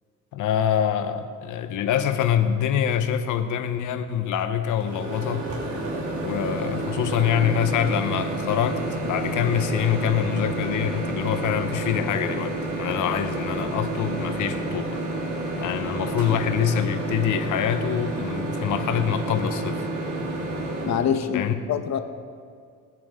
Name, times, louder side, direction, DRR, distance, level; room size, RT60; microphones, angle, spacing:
voice 1, 0.3-5.5 6.2-15.0 15.6-19.9 21.3-21.5, left 9 dB, 80° left, 9 dB, 1.1 m, -25 dB
Microwave oven, 4.8-21.0, right 2 dB, 75° right, 4.0 m, -29 dB
voice 2, 20.9-22.0, left 8 dB, 65° left, 8 dB, 1.1 m, -25 dB
24.5 x 9.5 x 3.7 m, 2.2 s
cardioid pair, 90°, 30 cm